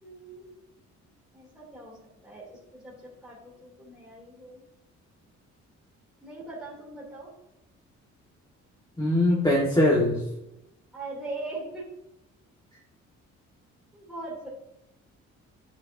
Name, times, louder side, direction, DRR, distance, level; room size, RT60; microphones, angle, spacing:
voice 1, 0.0-0.5 1.3-2.0 2.2-4.6 6.2-7.3 10.9-11.8 13.9-14.5, right 2 dB, ahead, -7 dB, 3.0 m, -40 dB
voice 2, 9.0-10.2, left 1 dB, 15° left, -4 dB, 1.6 m, -21 dB
10.5 x 6.7 x 2.7 m, 0.86 s
cardioid pair, 90°, 30 cm